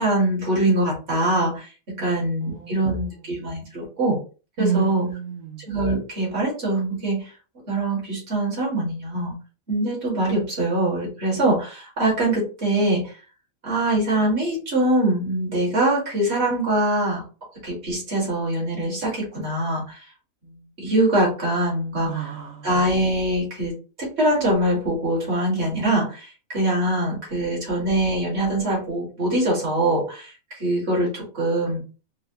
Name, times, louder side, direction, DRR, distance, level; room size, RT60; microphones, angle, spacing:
voice 1, 0.0-4.2 4.6-5.1 5.7-7.3 7.7-9.3 9.7-13.2 13.6-17.2 17.6-20.1 20.8-22.3 22.6-23.7 24.0-31.8, right 1 dB, 50° right, 1.9 m, -23 dB
voice 2, 2.4-3.1 4.6-5.6 22.0-22.7, right 8 dB, 85° right, 1.1 m, -29 dB
3.9 x 2.1 x 2.7 m
omnidirectional pair, 1.4 m